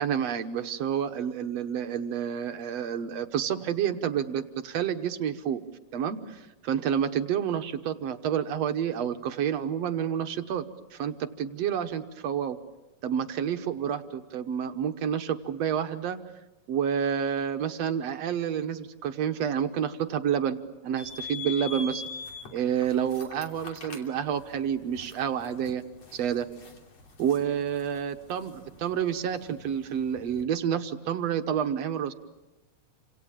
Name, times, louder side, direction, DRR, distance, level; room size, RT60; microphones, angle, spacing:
voice 1, 0.0-5.6 5.9-10.6 10.9-12.6 13.0-16.2 16.7-20.6 20.8-22.0 22.5-25.8 26.1-26.5 27.2-32.1, right 8 dB, 65° right, 8 dB, 2.1 m, -29 dB
sound 1, 21.0-30.4, left 4 dB, 55° left, 4.1 m, -44 dB
29.0 x 26.5 x 7.4 m, 1.0 s
omnidirectional pair, 3.5 m